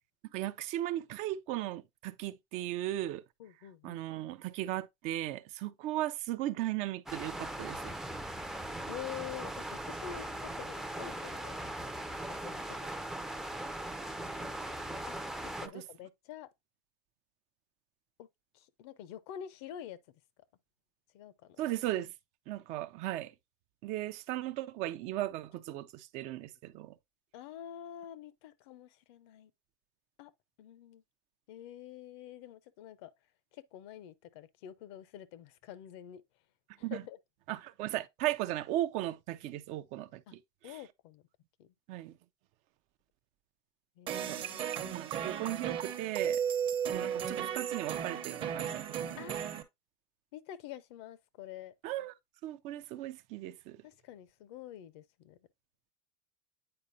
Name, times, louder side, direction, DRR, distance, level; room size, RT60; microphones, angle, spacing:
voice 1, 0.3-3.2 3.8-7.9 15.7-15.8 21.6-22.1 22.5-23.3 23.8-27.0 36.8-37.0 37.5-40.8 41.9-42.2 44.2-44.4 44.7-46.4 46.9-49.6 51.8-52.1 52.4-53.8, right 14 dB, 55° right, 0.5 m, -37 dB
voice 2, 3.4-4.0 8.9-11.6 12.4-12.9 14.4-14.5 15.1-15.2 15.4-16.5 18.2-18.3 18.5-20.0 21.1-21.6 27.3-29.5 30.2-30.3 30.6-31.0 31.5-33.1 33.5-36.2 36.9-37.2 40.3-40.4 40.6-41.2 41.6-41.7 44.0-44.9 49.2-49.4 50.3-51.7 53.8-55.4, left 11 dB, 75° left, 0.7 m, -47 dB
sound 1, 7.1-15.7, right 1 dB, 5° right, 0.4 m, -39 dB
It must be svpring, 44.1-49.6, right 8 dB, 40° right, 0.9 m, -35 dB
8.7 x 4.2 x 2.6 m
supercardioid pair, 130°, 14 cm